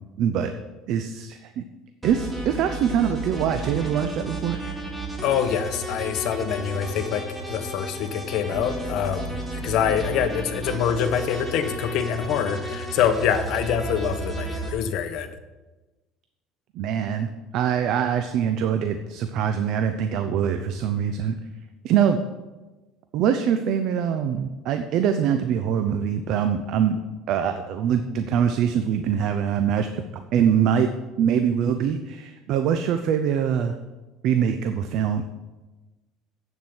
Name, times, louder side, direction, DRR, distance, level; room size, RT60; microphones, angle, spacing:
voice 1, 0.2-0.5 0.9-1.6 2.0-4.6 16.7-21.3 21.8-22.2 23.1-27.0 27.3-30.0 30.3-30.9 31.2-33.7 34.2-35.2, right 8 dB, 60° right, 8 dB, 0.7 m, -23 dB
sound 1, 2.0-14.7, right 2 dB, 10° right, 2.0 m, -33 dB
voice 2, 5.2-15.3, left 8 dB, 65° left, 8 dB, 1.1 m, -25 dB
8.2 x 7.2 x 7.9 m, 1.2 s
cardioid pair, 130°, 0 cm